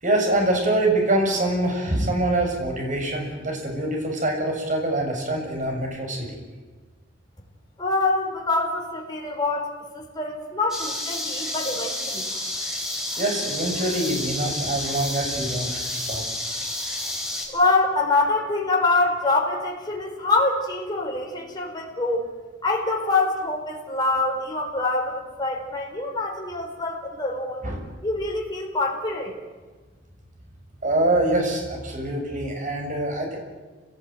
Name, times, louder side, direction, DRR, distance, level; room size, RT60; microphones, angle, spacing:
voice 1, 0.0-6.4 13.2-16.2 27.6-27.8 30.8-33.4, right 1 dB, 45° right, 2 dB, 7.2 m, -24 dB
voice 2, 7.8-12.3 17.5-22.3 22.6-27.6 28.0-29.4, left 3 dB, 20° left, -1 dB, 4.7 m, -25 dB
sound 1, 10.7-17.5, left 1 dB, 5° right, 5.3 m, -30 dB
28.0 x 18.0 x 9.4 m, 1.3 s
head